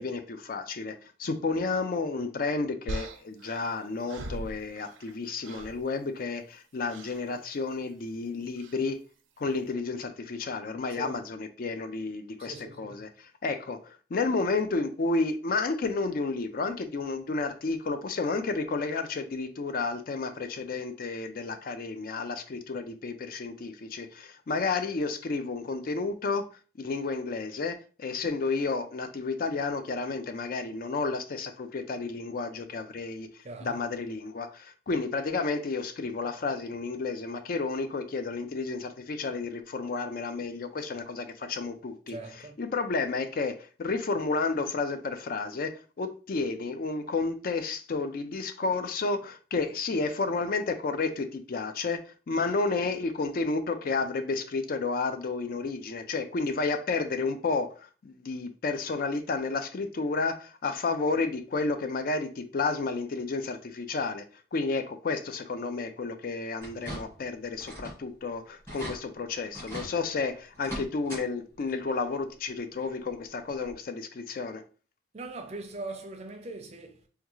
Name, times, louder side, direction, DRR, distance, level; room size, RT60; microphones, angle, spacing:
voice 1, 0.0-9.0 9.4-26.5 26.8-74.6, left 3 dB, 50° left, 0.4 m, -31 dB
sound 1, 2.9-5.2 5.4-5.8 6.9-7.2 8.6-8.8, right 1 dB, 90° right, 0.5 m, -40 dB
voice 2, 12.4-13.0 33.4-33.8 42.1-42.5 75.1-77.1, right 2 dB, 35° right, 0.5 m, -41 dB
sound 2, 66.6-67.3 67.6-68.0 68.3-68.4 68.7-69.0 69.5-69.9 70.5-71.2 71.6-71.7 73.1-73.2 73.7-73.8, equal, 15° left, 1.4 m, -39 dB
3.5 x 2.3 x 3.0 m
head